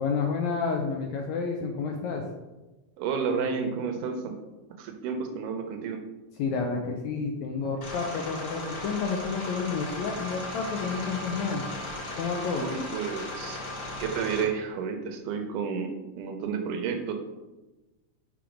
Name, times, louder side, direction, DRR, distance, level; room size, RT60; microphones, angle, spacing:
voice 1, 0.0-2.2 6.4-11.6 12.2-12.7, left 5 dB, 80° left, 2 dB, 1.7 m, -30 dB
voice 2, 3.0-4.4 4.8-6.0 12.6-13.6 14.0-17.1, right 6 dB, 85° right, 5 dB, 2.2 m, -31 dB
sound 1, 7.8-14.4, left 1 dB, 45° left, 2.8 m, -36 dB
5.9 x 3.6 x 5.0 m, 1.1 s
omnidirectional pair, 3.7 m